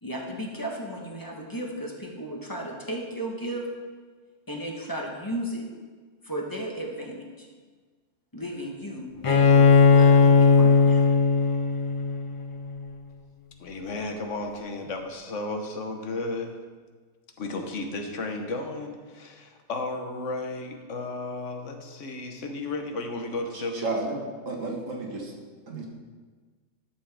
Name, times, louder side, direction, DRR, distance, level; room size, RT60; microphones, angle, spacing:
voice 1, 0.0-3.7 4.5-5.7 6.2-7.5 8.3-11.0, right 1 dB, 20° left, -1 dB, 1.1 m, -35 dB
Bowed string instrument, 9.2-12.9, left 4 dB, 55° left, 0.3 m, -18 dB
voice 2, 13.6-16.5 17.4-23.9, left 2 dB, 70° left, 4 dB, 1.3 m, -33 dB
voice 3, 23.5-24.2 24.5-25.3 25.7-25.9, right 2 dB, 85° right, 0 dB, 1.8 m, -32 dB
11.5 x 7.3 x 3.5 m, 1.5 s
omnidirectional pair, 1.3 m